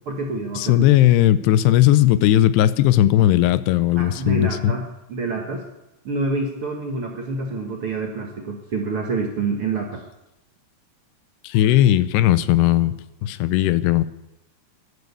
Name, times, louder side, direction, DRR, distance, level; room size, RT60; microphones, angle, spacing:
voice 1, 0.1-0.9 3.9-5.6 6.0-10.0, right 3 dB, 60° right, 1 dB, 1.4 m, -27 dB
voice 2, 0.6-4.7 11.4-12.9 13.2-14.0, left 13 dB, 80° left, 16 dB, 2.7 m, -17 dB
14.0 x 11.5 x 8.3 m, 0.91 s
omnidirectional pair, 4.8 m